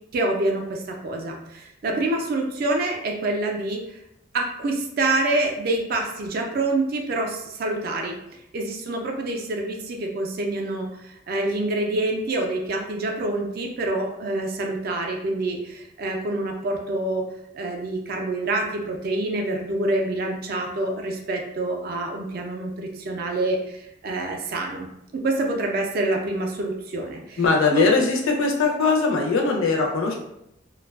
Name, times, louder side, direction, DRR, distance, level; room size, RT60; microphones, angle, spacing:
voice 1, 0.1-4.0 4.3-17.3 17.5-24.9 25.2-27.4 27.7-27.9, right 2 dB, 45° right, 2 dB, 0.3 m, -26 dB
voice 2, 27.4-30.1, left 4 dB, 75° left, 1 dB, 0.5 m, -21 dB
2.4 x 2.2 x 2.3 m, 0.79 s
head